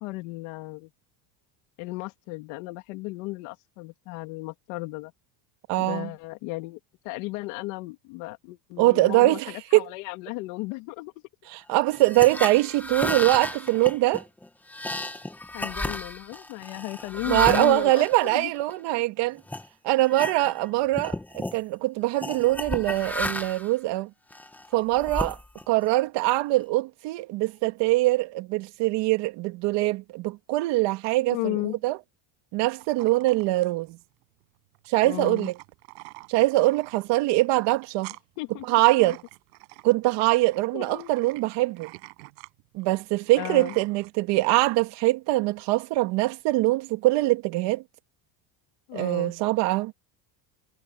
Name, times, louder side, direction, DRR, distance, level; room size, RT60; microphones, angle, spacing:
voice 1, 0.0-0.9 1.8-5.1 5.8-6.8 7.0-11.1 15.5-18.5 31.3-31.8 35.0-35.5 38.4-38.8 39.1-39.2 40.7-41.1 43.4-43.8 48.9-49.3, left 23 dB, 70° left, 2.5 m, -35 dB
voice 2, 5.7-6.1 8.8-9.9 11.5-14.2 17.3-19.4 19.8-24.1 24.7-25.4 25.7-31.6 31.8-32.0 32.5-34.0 34.9-35.5 36.3-38.1 38.7-39.2 39.8-41.9 42.7-47.8 48.9-49.9, right 19 dB, 55° right, 2.5 m, -23 dB
sound 1, 11.9-19.0 19.5-19.7 20.0-20.7 20.9-21.6 22.2-23.7 24.3-25.8, left 1 dB, 5° left, 0.8 m, -33 dB
sound 2, 32.8-44.1, right 34 dB, 80° right, 7.9 m, -48 dB
cardioid pair, 170°, 49 cm